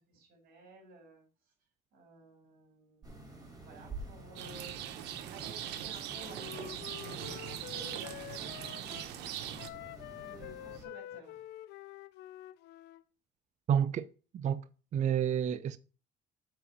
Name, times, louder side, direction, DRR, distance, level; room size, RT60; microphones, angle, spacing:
voice 1, 0.1-1.2 1.9-4.8 5.3-9.3 10.3-11.4, right 2 dB, 65° right, 4.5 m, -54 dB
sound 1, 3.0-10.8, right 2 dB, 20° right, 2.4 m, -50 dB
Rain, 4.4-9.7, right 11 dB, 90° right, 0.8 m, -41 dB
Wind instrument woodwind instrument, 6.1-9.1 9.6-13.0, left 14 dB, 80° left, 0.5 m, -47 dB
voice 2, 13.7-14.1 14.3-14.6 14.9-15.8, right 8 dB, 45° right, 0.5 m, -29 dB
7.7 x 4.1 x 5.2 m
cardioid pair, 110°, 17 cm